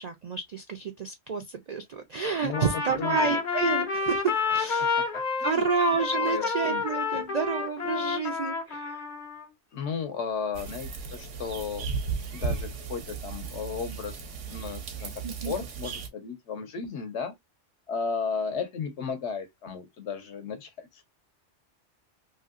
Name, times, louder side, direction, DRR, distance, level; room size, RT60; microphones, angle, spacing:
voice 1, 0.0-4.9 5.4-9.0 15.2-15.5, right 5 dB, 65° right, 0.4 m, -30 dB
voice 2, 2.4-3.4 4.8-5.7 6.2-6.8 7.1-7.2 9.7-11.9 12.3-14.2 14.5-15.1 15.4-17.3 17.9-21.0, left 6 dB, 70° left, 1.1 m, -34 dB
Trumpet, 2.5-9.4, left 4 dB, 45° left, 0.8 m, -29 dB
sound 1, 10.5-16.1, right 5 dB, 85° right, 1.1 m, -35 dB
2.9 x 2.7 x 2.4 m
omnidirectional pair, 1.2 m